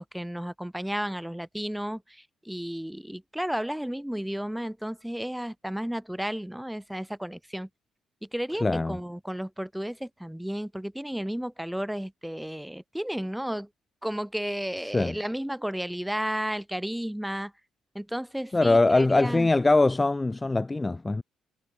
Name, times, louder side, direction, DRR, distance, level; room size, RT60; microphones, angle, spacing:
voice 1, 0.0-7.7 8.2-13.7 14.0-17.5 17.9-19.5, equal, 5° right, 3.4 m, -33 dB
voice 2, 8.6-9.0 14.9-15.2 18.5-21.2, left 2 dB, 20° left, 0.4 m, -22 dB
figure-of-eight pair, 45°, 0 cm